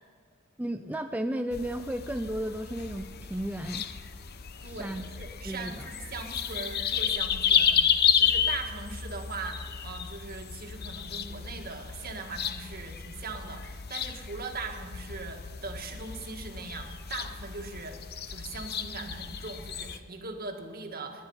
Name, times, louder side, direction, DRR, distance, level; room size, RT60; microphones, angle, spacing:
voice 1, 0.6-3.8 4.6-5.1 5.4-5.9, right 1 dB, 10° right, 5 dB, 0.4 m, -34 dB
sound 1, 1.5-20.0, left 8 dB, 50° left, 0.8 m, -32 dB
voice 2, 4.6-18.0 18.3-21.3, right 3 dB, 45° right, 3 dB, 1.8 m, -40 dB
22.0 x 10.0 x 5.5 m, 2.1 s
head